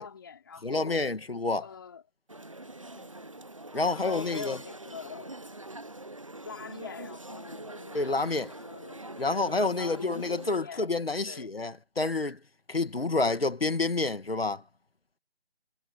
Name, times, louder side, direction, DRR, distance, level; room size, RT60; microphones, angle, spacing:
voice 1, 0.0-1.0 1.6-2.0 2.9-3.3 3.9-5.4 6.4-8.0 8.5-9.5 9.8-10.9 11.2-11.5, left 6 dB, 20° left, 4.4 m, -44 dB
voice 2, 0.6-1.7 3.7-4.6 7.9-8.5 9.2-12.4 12.7-14.6, left 3 dB, 55° left, 2.4 m, -28 dB
sound 1, 2.3-10.6, right 2 dB, 30° right, 1.1 m, -44 dB
figure-of-eight pair, 170°, 34 cm